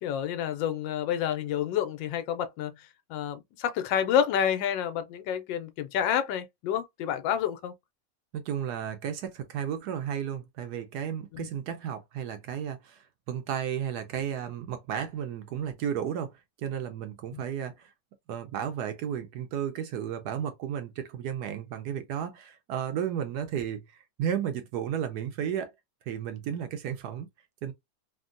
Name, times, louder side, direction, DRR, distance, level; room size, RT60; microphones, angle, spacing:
voice 1, 0.0-2.7 3.1-7.7 11.3-11.5 17.3-17.4, left 9 dB, 90° left, 1.3 m, -29 dB
voice 2, 8.3-16.3 16.6-17.9 18.3-25.7 26.1-27.3 27.6-27.7, right 9 dB, 70° right, 1.0 m, -33 dB
3.5 x 2.1 x 2.5 m
omnidirectional pair, 2.0 m